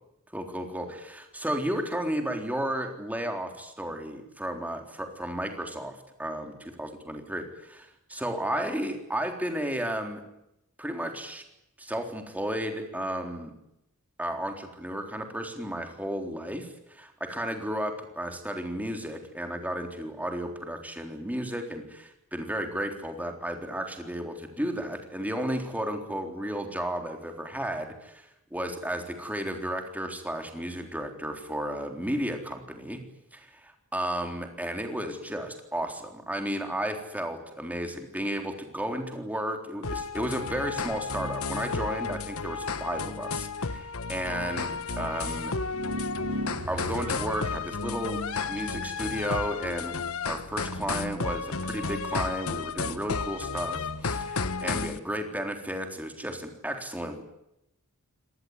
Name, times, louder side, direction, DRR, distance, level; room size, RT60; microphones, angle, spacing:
voice 1, 0.3-6.5 6.8-10.2 10.8-11.4 11.8-13.5 14.2-33.0 33.3-45.5 46.7-48.2 48.5-50.0 50.3-57.2, equal, 5° right, 4 dB, 3.9 m, -33 dB
sound 1, 39.8-55.0, left 4 dB, 70° left, 1.3 m, -32 dB
sound 2, 45.7-47.5, equal, 80° right, 2.4 m, -35 dB
25.5 x 19.0 x 9.8 m, 0.85 s
head